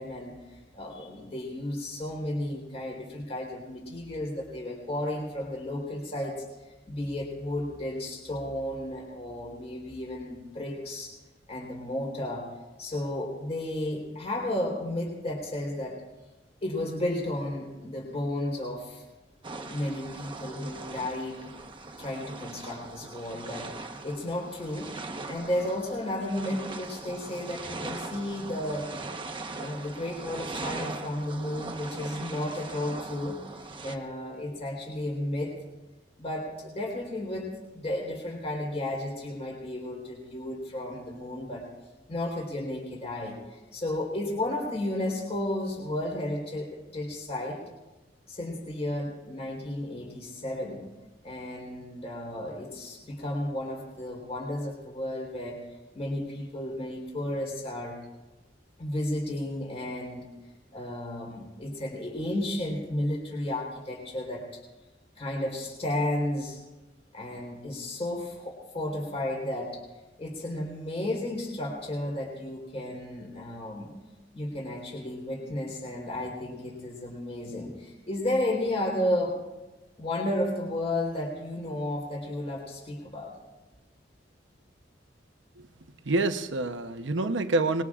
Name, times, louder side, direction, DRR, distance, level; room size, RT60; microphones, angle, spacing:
voice 1, 0.0-6.3 6.9-11.1 11.5-12.5 12.8-16.0 16.6-19.0 19.6-21.7 22.0-24.9 25.3-28.9 29.6-33.4 33.8-35.5 36.2-41.7 42.1-47.6 48.3-50.8 51.2-58.0 58.8-60.3 60.7-64.4 65.2-66.6 67.1-69.8 70.2-73.9 74.3-79.4 80.0-83.3, left 1 dB, 35° left, 3.9 m, -33 dB
sound 1, 19.4-34.0, right 3 dB, 30° right, 1.1 m, -40 dB
voice 2, 86.0-87.8, right 2 dB, 90° right, 0.9 m, -27 dB
25.5 x 21.0 x 2.5 m
head